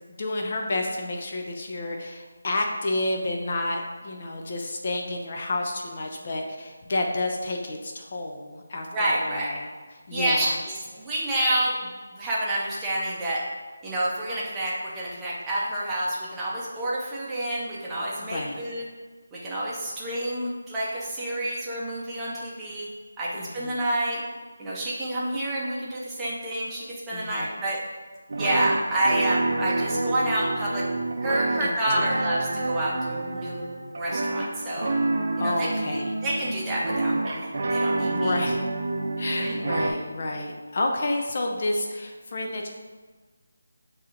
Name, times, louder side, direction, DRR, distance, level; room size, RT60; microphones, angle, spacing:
voice 1, 0.1-9.7 10.1-10.6 18.2-18.6 23.4-23.8 27.1-27.5 31.6-31.7 32.0-32.3 35.4-36.1 37.9-38.6 39.2-42.7, left 2 dB, 40° left, 1 dB, 0.4 m, -30 dB
voice 2, 8.9-9.5 10.1-10.5 10.9-13.4 13.8-18.8 19.3-22.9 23.2-24.2 24.6-27.8 28.4-30.9 31.2-33.6 34.0-34.9 35.4-36.0 36.2-37.4 37.7-38.4 39.4-39.6, right 1 dB, 10° right, -7 dB, 0.7 m, -28 dB
sound 1, 28.3-39.9, right 2 dB, 45° right, 0.5 m, -28 dB
6.9 x 2.7 x 2.5 m, 1.4 s
figure-of-eight pair, 170°, 0 cm